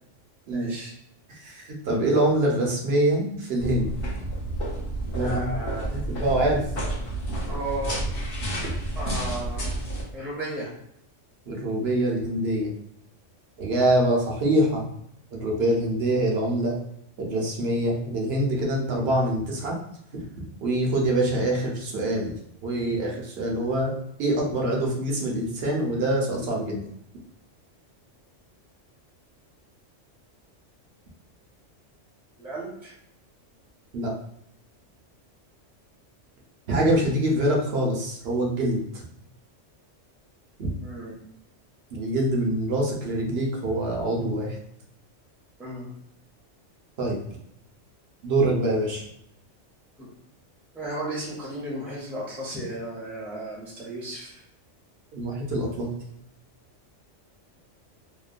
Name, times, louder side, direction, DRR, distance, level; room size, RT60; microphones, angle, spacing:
voice 1, 0.5-0.9 5.1-5.9 7.5-8.0 8.9-9.8 10.1-10.7 32.4-32.9 37.4-37.6 40.8-41.2 45.6-45.9 50.0-50.1 50.7-54.4, right 1 dB, ahead, -5 dB, 0.6 m, -34 dB
voice 2, 1.3-3.9 5.1-5.5 5.9-6.6 9.2-9.3 11.5-12.7 13.6-14.8 15.3-16.8 17.2-19.7 20.1-20.2 20.6-22.3 22.6-23.9 24.2-26.8 33.9-34.1 36.7-39.0 40.6-40.7 41.9-44.6 47.0-47.2 48.2-49.0 55.1-55.9, right 1 dB, 60° right, -1 dB, 0.9 m, -25 dB
sound 1, 3.6-10.0, right 1 dB, 55° left, 0.8 m, -30 dB
2.8 x 2.1 x 2.4 m, 0.74 s
omnidirectional pair, 1.3 m